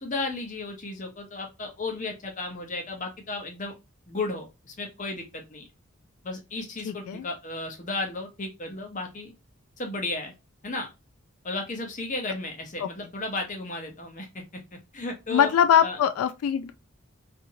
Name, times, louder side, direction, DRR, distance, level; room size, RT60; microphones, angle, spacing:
voice 1, 0.0-3.7 4.1-5.6 6.2-9.3 9.8-10.3 10.6-10.9 11.4-14.4 14.9-15.5 15.8-16.0, left 2 dB, 35° left, 0.8 m, -34 dB
voice 2, 6.8-7.3 12.8-12.9 15.3-16.7, left 8 dB, 90° left, 0.3 m, -22 dB
2.8 x 2.7 x 2.6 m
head